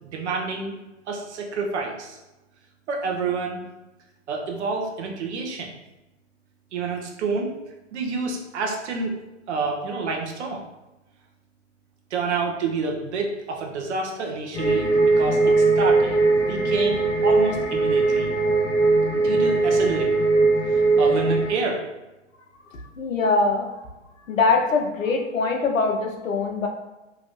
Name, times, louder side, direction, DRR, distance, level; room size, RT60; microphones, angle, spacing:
voice 1, 0.0-0.8 1.1-2.2 2.9-3.6 4.3-5.7 6.7-7.5 7.9-9.1 9.5-10.6 12.1-18.3 19.1-20.1 21.0-21.9, right 4 dB, 60° right, 1 dB, 0.8 m, -28 dB
sound 1, 14.5-21.5, right 3 dB, 5° left, 0.4 m, -20 dB
voice 2, 22.7-23.7 24.3-26.7, left 3 dB, 90° left, 2 dB, 0.7 m, -23 dB
2.9 x 2.5 x 3.0 m, 1.0 s
hypercardioid pair, 110°, 38 cm